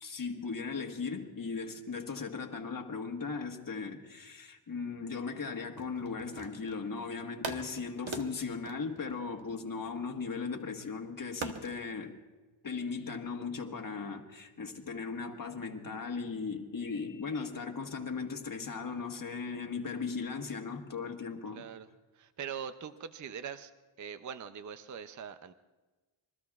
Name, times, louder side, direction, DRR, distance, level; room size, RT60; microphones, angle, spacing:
voice 1, 0.0-12.1 12.6-21.6, left 5 dB, 40° left, 1.5 m, -37 dB
sound 1, 5.7-6.9 7.4-9.9 11.4-11.8, right 4 dB, 65° right, 1.2 m, -42 dB
voice 2, 21.5-21.9 22.1-23.7 24.0-25.5, right 7 dB, 40° right, 0.5 m, -42 dB
27.5 x 22.5 x 2.4 m
wide cardioid pair, 145°, 49 cm